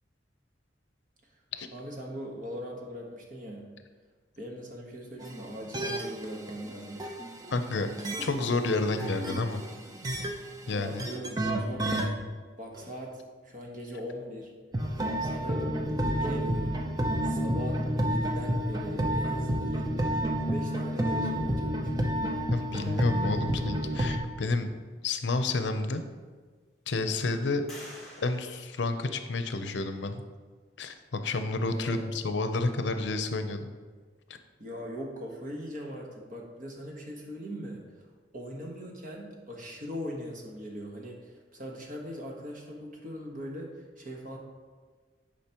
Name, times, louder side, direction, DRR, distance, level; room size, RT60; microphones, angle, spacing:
voice 1, 1.7-3.7 4.4-7.0 10.7-12.1 12.6-14.5 15.2-16.8 17.2-22.1 31.7-32.2 34.6-37.8 38.3-44.4, equal, 45° right, 0 dB, 1.2 m, -40 dB
sound 1, 5.2-12.1 12.8-12.9 14.7-24.2, equal, 20° right, 0.6 m, -30 dB
voice 2, 7.5-7.9 8.2-9.6 10.7-11.0 22.5-24.7 25.0-26.0 26.9-27.6 28.2-30.2 30.8-33.7, left 3 dB, 75° left, 8 dB, 0.6 m, -30 dB
sound 2, 25.4-25.5 26.1-26.8 27.7-29.6, left 1 dB, ahead, 1.7 m, -50 dB
10.0 x 5.1 x 2.9 m, 1.5 s
head